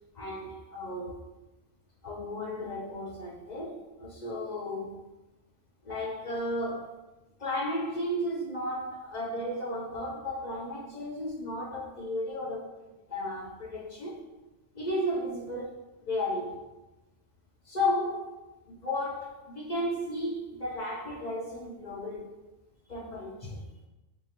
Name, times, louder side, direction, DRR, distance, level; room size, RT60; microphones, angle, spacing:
voice 1, 0.2-1.2 2.0-5.1 5.8-6.9 7.4-12.7 13.1-14.3 14.7-15.7 16.1-16.6 17.7-18.4 18.7-22.3 22.9-23.6, left 1 dB, 50° left, 0.5 m, -34 dB
5.4 x 2.4 x 2.8 m
omnidirectional pair, 1.2 m